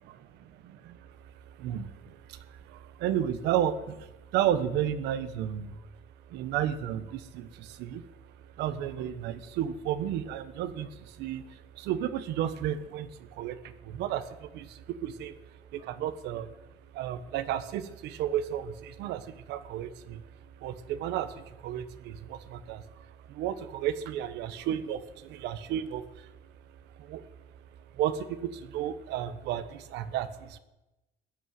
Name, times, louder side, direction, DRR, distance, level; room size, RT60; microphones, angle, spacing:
voice 1, 0.7-5.8 6.3-8.0 8.4-15.3 15.7-16.6 16.9-20.2 20.6-26.3 27.0-27.2 27.9-30.6, right 10 dB, 85° right, 12 dB, 1.2 m, -33 dB
15.0 x 8.7 x 9.4 m, 0.99 s
cardioid pair, 110°, 17 cm